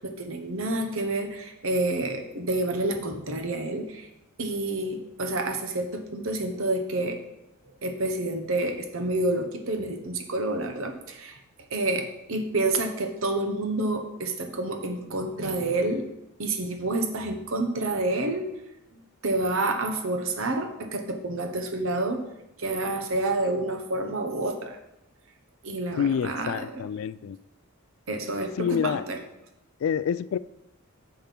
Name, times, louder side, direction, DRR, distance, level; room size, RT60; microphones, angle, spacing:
voice 1, 0.0-4.1 4.4-7.2 7.8-11.4 11.7-16.1 16.4-18.5 18.9-22.3 22.6-24.8 25.6-26.8 28.1-29.2, right 2 dB, 70° right, 5 dB, 1.0 m, -29 dB
voice 2, 26.0-27.4 28.6-29.1 29.8-30.4, left 7 dB, 65° left, 16 dB, 0.3 m, -27 dB
6.9 x 5.3 x 5.9 m, 0.87 s
head